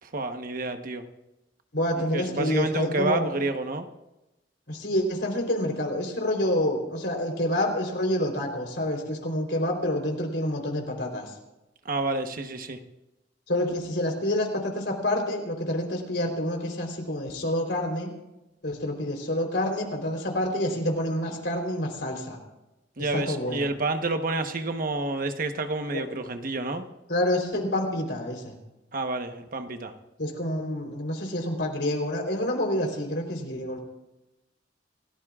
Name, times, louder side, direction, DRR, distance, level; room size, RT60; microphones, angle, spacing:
voice 1, 0.0-1.0 2.1-3.9 11.8-12.8 23.0-26.9 28.9-29.9, right 2 dB, 50° right, 7 dB, 1.1 m, -29 dB
voice 2, 1.7-3.3 4.7-11.3 13.5-18.1 18.6-22.4 23.0-23.7 25.9-26.0 27.1-28.6 30.2-33.8, left 1 dB, 70° left, 2 dB, 3.7 m, -28 dB
28.0 x 17.0 x 2.4 m, 0.97 s
head